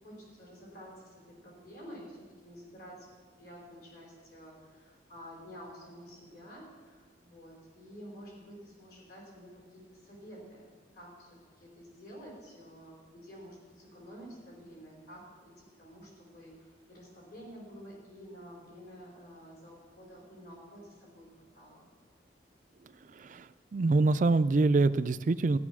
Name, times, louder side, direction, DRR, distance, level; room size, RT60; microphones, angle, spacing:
voice 1, 0.0-3.1 3.4-10.7 10.9-11.3 11.6-21.3 21.5-21.9, equal, 55° left, -3 dB, 5.0 m, -50 dB
voice 2, 23.7-25.6, right 3 dB, 45° right, 13 dB, 0.4 m, -25 dB
14.0 x 9.9 x 6.1 m, 1.5 s
head